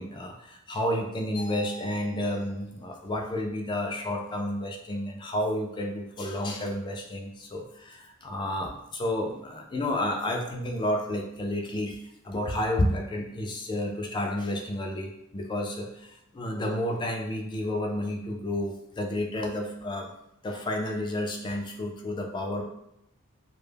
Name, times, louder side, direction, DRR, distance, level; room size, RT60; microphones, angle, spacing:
voice 1, 0.0-12.0 12.2-20.1 20.4-22.6, left 1 dB, 20° left, 2 dB, 0.3 m, -31 dB
2.1 x 2.0 x 3.2 m, 0.79 s
head